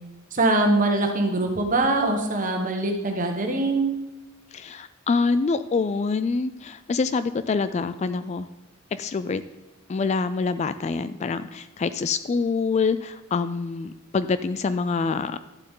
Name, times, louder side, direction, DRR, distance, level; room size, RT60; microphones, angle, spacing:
voice 1, 0.3-3.9, right 2 dB, 40° right, 3 dB, 1.4 m, -23 dB
voice 2, 4.5-8.5 8.9-9.4 9.9-15.4, left 4 dB, 30° left, 13 dB, 0.3 m, -26 dB
11.5 x 7.7 x 3.8 m, 1.1 s
head